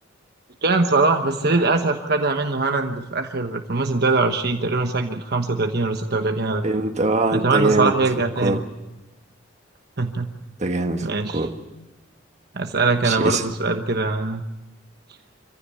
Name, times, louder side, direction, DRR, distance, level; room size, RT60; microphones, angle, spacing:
voice 1, 0.6-6.6 7.3-8.6 10.0-10.3 11.0-11.5 12.5-14.4, right 3 dB, 55° right, 1.2 m, -22 dB
voice 2, 6.6-7.9 8.4-8.7 10.6-11.1 11.3-11.6 13.0-13.4, right 2 dB, 35° right, 1.6 m, -22 dB
26.0 x 15.5 x 8.4 m
head